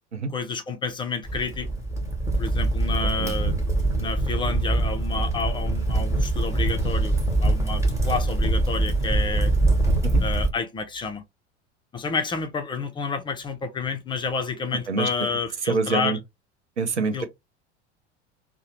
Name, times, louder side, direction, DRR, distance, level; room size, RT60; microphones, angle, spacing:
voice 1, 0.3-1.7 2.4-3.6 4.0-9.5 10.2-11.2 11.9-16.2 17.1-17.3, left 4 dB, 15° left, 0.4 m, -30 dB
Crackle, 1.3-10.5, right 2 dB, 10° right, 1.0 m, -23 dB
voice 2, 15.7-16.2 16.8-17.3, right 4 dB, 80° right, 0.6 m, -25 dB
2.7 x 2.1 x 3.0 m
figure-of-eight pair, 70°, 34 cm